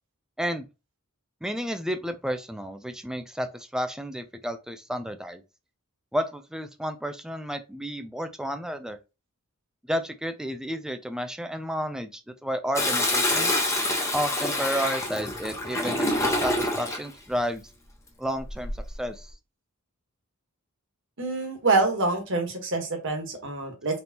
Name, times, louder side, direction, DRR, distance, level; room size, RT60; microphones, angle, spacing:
voice 1, 1.4-5.4 6.1-9.0 9.9-13.5 14.1-17.7 18.2-19.3, equal, 5° right, 0.4 m, -31 dB
Toilet flush, 12.8-17.1 18.4-18.9, left 1 dB, 15° left, 1.0 m, -26 dB
voice 2, 21.2-24.0, right 3 dB, 60° right, 1.3 m, -26 dB
4.2 x 3.4 x 2.9 m
head